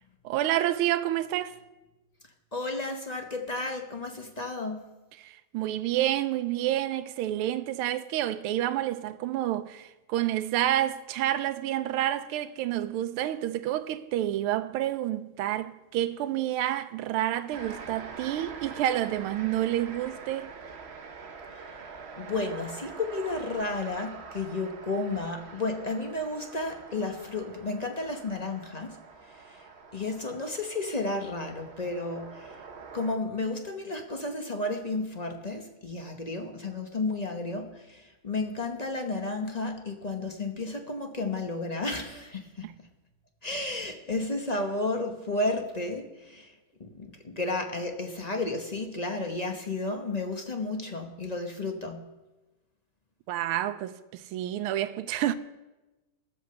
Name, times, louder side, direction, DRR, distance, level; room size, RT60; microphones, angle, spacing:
voice 1, 0.2-1.6 5.2-20.5 42.6-42.7 53.3-55.3, right 13 dB, 80° right, 1.5 m, -29 dB
voice 2, 2.5-4.9 22.2-29.0 29.5-29.6 29.9-32.5 32.9-42.7 43.4-46.5 46.8-52.0, left 2 dB, 35° left, 0.6 m, -32 dB
sound 1, 17.5-33.2, right 5 dB, 55° right, 0.7 m, -45 dB
13.5 x 8.3 x 6.9 m
omnidirectional pair, 2.4 m